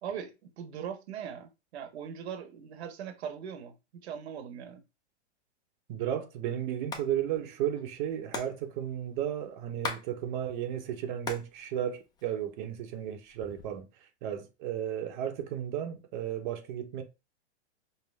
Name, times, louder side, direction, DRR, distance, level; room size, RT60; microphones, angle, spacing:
voice 1, 0.0-4.8, right 8 dB, 65° right, 1.1 m, -40 dB
voice 2, 5.9-17.0, right 10 dB, 45° right, 0.8 m, -34 dB
Hands, 6.7-7.1 7.3-7.4 7.6-10.1 10.4-11.5 11.9-12.7 13.2-13.8, left 4 dB, 10° left, 0.5 m, -39 dB
5.5 x 2.1 x 3.3 m
hypercardioid pair, 130°, 34 cm